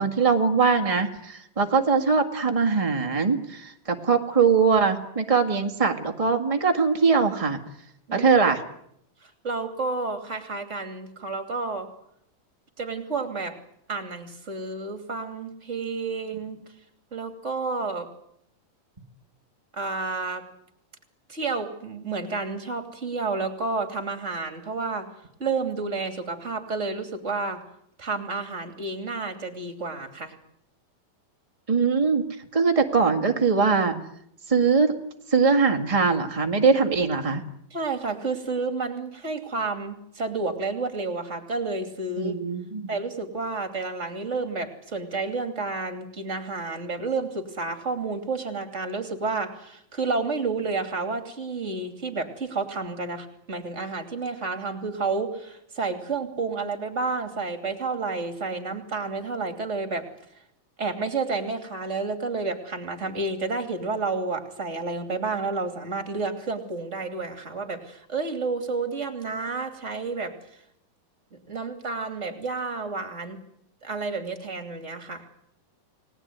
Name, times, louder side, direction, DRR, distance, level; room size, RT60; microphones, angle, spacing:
voice 1, 0.0-7.6 8.1-8.6 31.7-32.2 32.5-34.0 34.5-34.9 35.3-37.4 42.2-42.8, right 5 dB, 40° right, 3 dB, 0.4 m, -22 dB
voice 2, 9.2-11.9 12.8-13.6 13.9-16.6 17.1-18.1 19.7-20.4 21.3-25.1 25.4-27.6 28.0-30.3 37.7-42.4 42.9-60.1 60.8-70.3 71.3-73.4 73.8-75.3, right 3 dB, 20° right, 6 dB, 2.7 m, -30 dB
30.0 x 19.5 x 9.4 m, 0.77 s
omnidirectional pair, 4.0 m